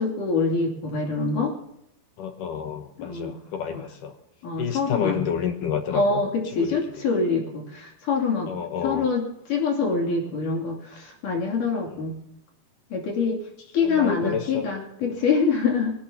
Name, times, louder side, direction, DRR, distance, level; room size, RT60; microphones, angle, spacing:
voice 1, 0.0-1.5 3.0-3.4 3.7-3.9 4.4-5.2 5.9-8.5 8.8-12.2 12.9-13.4 13.7-16.0, left 4 dB, 55° left, 0 dB, 4.1 m, -25 dB
voice 2, 2.2-4.1 4.6-6.2 6.5-6.7 8.5-9.1 11.9-12.0 13.8-14.7 15.0-15.2, left 8 dB, 70° left, 6 dB, 2.2 m, -29 dB
22.5 x 17.5 x 2.9 m, 0.78 s
omnidirectional pair, 4.9 m